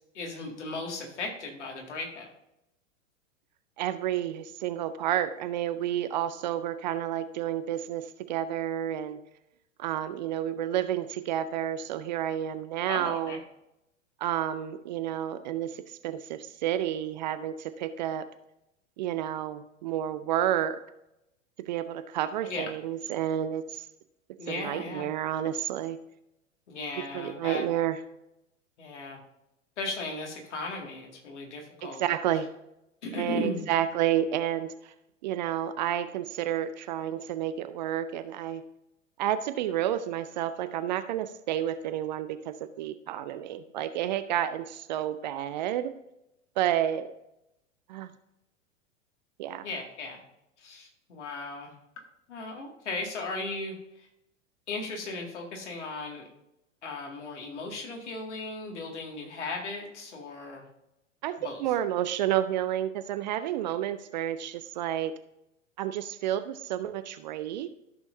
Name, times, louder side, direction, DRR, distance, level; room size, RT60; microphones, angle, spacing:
voice 1, 0.1-2.3 12.9-13.4 22.4-22.7 24.4-25.1 26.7-27.6 28.8-29.2 29.8-32.0 33.0-33.7 49.6-50.2 50.6-51.7 52.3-53.8 54.7-56.2 56.8-60.7 61.4-61.6, left 2 dB, 65° left, 1 dB, 2.2 m, -36 dB
voice 2, 3.8-9.2 9.8-13.4 14.2-18.2 19.0-20.8 21.7-23.9 24.5-26.0 26.9-28.0 31.8-32.5 33.1-34.9 35.2-38.6 39.2-45.9 46.6-47.1 47.9-48.1 49.4-49.6 61.2-65.2 65.8-67.7, right 11 dB, 35° right, 12 dB, 0.4 m, -30 dB
13.5 x 6.2 x 2.7 m, 0.87 s
figure-of-eight pair, 95°, 39 cm